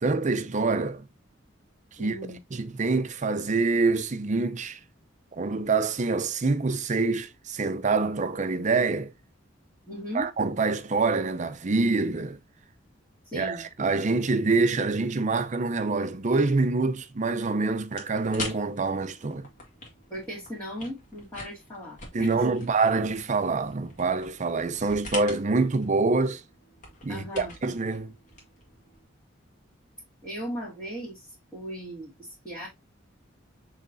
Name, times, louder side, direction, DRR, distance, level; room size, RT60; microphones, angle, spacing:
voice 1, 0.0-1.0 2.0-2.1 2.5-4.8 5.3-9.1 10.1-12.4 13.3-19.5 22.1-26.4 27.0-28.1, right 3 dB, 40° right, 0.6 m, -26 dB
voice 2, 2.0-2.4 9.9-10.3 13.3-13.7 20.1-22.6 27.1-27.5 30.2-31.3 31.5-32.7, equal, 15° left, 2.2 m, -37 dB
sound 1, 17.9-29.0, left 2 dB, 40° left, 1.8 m, -44 dB
6.3 x 3.2 x 2.6 m
head